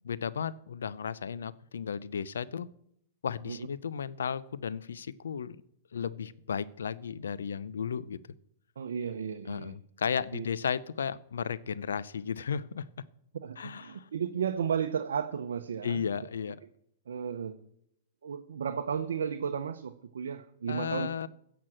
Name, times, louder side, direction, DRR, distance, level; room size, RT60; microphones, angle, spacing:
voice 1, 0.0-2.7 3.2-5.6 5.9-8.2 9.5-12.9 13.6-14.1 15.8-16.6 20.7-21.3, left 7 dB, 90° left, 18 dB, 0.6 m, -34 dB
voice 2, 8.8-9.8 10.3-10.5 13.4-16.0 17.1-17.6 18.2-21.1, right 7 dB, 85° right, 7 dB, 0.8 m, -34 dB
16.0 x 6.1 x 7.6 m, 0.73 s
hypercardioid pair, 130°, 0 cm